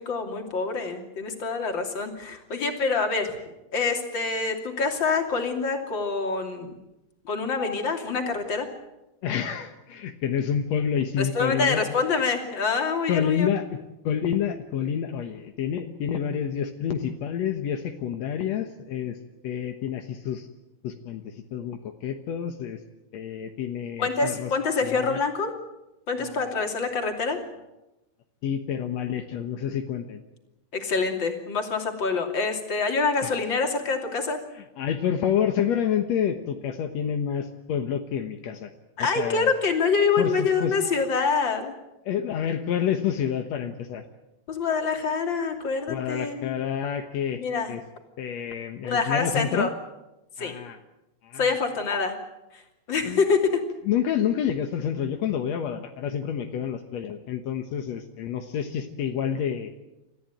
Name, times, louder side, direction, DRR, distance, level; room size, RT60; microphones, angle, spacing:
voice 1, 0.0-6.8 7.2-8.7 11.2-13.5 24.0-25.5 26.1-27.4 30.7-34.4 39.0-41.7 44.5-46.5 47.4-47.7 48.8-49.7 50.4-50.6 51.4-52.1 52.5-52.6 52.9-53.6, left 4 dB, 30° left, 4 dB, 2.9 m, -26 dB
voice 2, 9.2-11.9 13.1-13.6 14.0-19.2 19.4-20.5 20.8-22.8 23.1-24.5 24.8-25.2 26.2-26.5 28.4-30.2 33.2-33.3 34.5-38.7 39.0-39.5 40.2-40.7 42.0-44.0 45.9-47.4 47.7-47.8 48.2-49.7 50.4-50.8 51.2-51.5 53.0-53.2 53.9-59.7, left 8 dB, 70° left, 5 dB, 1.6 m, -28 dB
29.0 x 14.5 x 9.1 m, 0.97 s
omnidirectional pair, 4.7 m